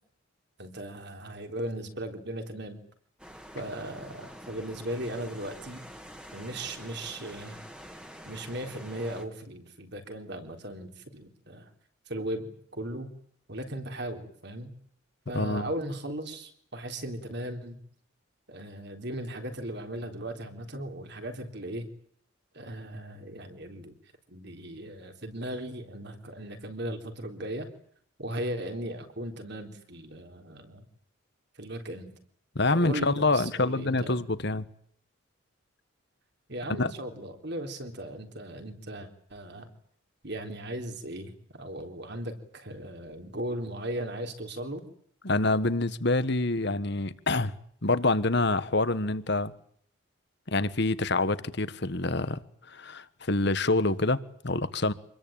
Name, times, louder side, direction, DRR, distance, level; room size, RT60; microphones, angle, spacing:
voice 1, 0.6-2.8 3.5-5.8 6.3-7.6 8.3-11.7 12.1-13.1 13.5-14.7 15.3-17.8 18.5-21.9 22.5-23.9 24.3-27.7 28.2-30.8 31.6-32.1 32.7-34.2 36.5-39.7 40.2-44.8, right 1 dB, 50° right, 3.8 m, -37 dB
sound 1, 3.2-9.3, equal, 5° right, 2.2 m, -46 dB
voice 2, 15.3-15.7 32.5-34.7 36.7-36.9 45.2-47.5 47.8-49.5 50.5-52.4 52.7-54.9, left 2 dB, 55° left, 1.5 m, -26 dB
26.5 x 21.5 x 8.9 m
head